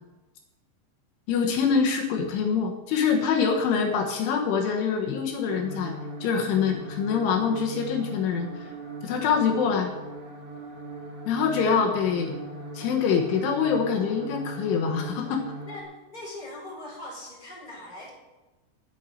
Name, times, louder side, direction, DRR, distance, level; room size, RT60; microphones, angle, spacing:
voice 1, 1.3-6.0 6.2-8.5 9.0-9.9 11.3-12.3 12.8-15.5, left 6 dB, 75° left, 2 dB, 3.6 m, -25 dB
sound 1, 5.5-15.8, right 1 dB, 60° right, 4.2 m, -40 dB
voice 2, 15.6-18.1, left 1 dB, 10° left, -3 dB, 3.9 m, -41 dB
11.0 x 7.8 x 9.8 m, 1.1 s
omnidirectional pair, 5.7 m